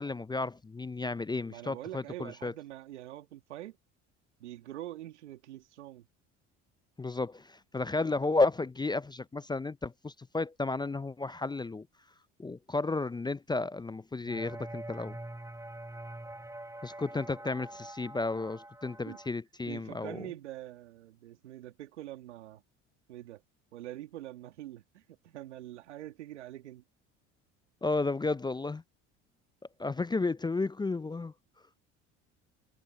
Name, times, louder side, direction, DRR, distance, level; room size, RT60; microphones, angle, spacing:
voice 1, 0.0-2.5 7.0-11.9 12.4-15.2 16.8-20.2 27.8-28.8 29.8-31.3, left 3 dB, 15° left, 0.5 m, -32 dB
voice 2, 1.5-3.8 4.4-6.1 19.1-19.2 19.7-22.6 23.1-23.4 23.7-26.8, right 14 dB, 90° right, 2.4 m, -44 dB
sound 1, 14.3-19.3, right 1 dB, 10° right, 7.1 m, -45 dB
hypercardioid pair, 65°, 34 cm